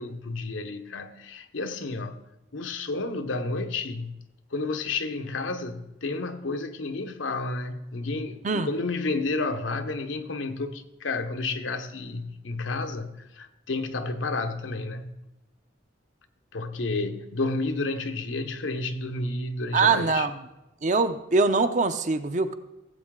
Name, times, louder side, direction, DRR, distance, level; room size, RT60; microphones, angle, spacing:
voice 1, 0.0-2.2 2.5-4.1 4.5-15.2 16.5-20.3, left 3 dB, 85° left, 0.9 m, -31 dB
voice 2, 19.7-20.3 20.8-22.5, right 4 dB, 40° right, 0.6 m, -23 dB
16.5 x 7.9 x 3.7 m
head